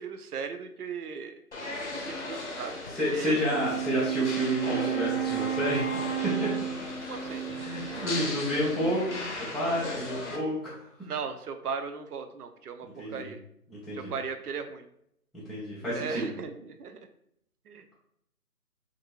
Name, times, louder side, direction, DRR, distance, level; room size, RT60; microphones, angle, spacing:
voice 1, 0.0-1.3 2.1-2.8 3.1-3.4 7.0-7.4 11.1-13.4 13.9-14.8 15.9-17.0 17.7-17.9, right 6 dB, 75° right, 8 dB, 0.5 m, -37 dB
sound 1, 1.5-10.4, left 2 dB, 50° left, 0.7 m, -37 dB
voice 2, 2.6-6.5 7.5-10.9 12.8-13.3 13.7-14.1 15.3-16.3, equal, ahead, -9 dB, 0.4 m, -31 dB
Wind instrument woodwind instrument, 3.4-8.3, right 11 dB, 20° left, 0.9 m, -32 dB
2.6 x 2.6 x 2.8 m, 0.74 s
figure-of-eight pair, 170°, 46 cm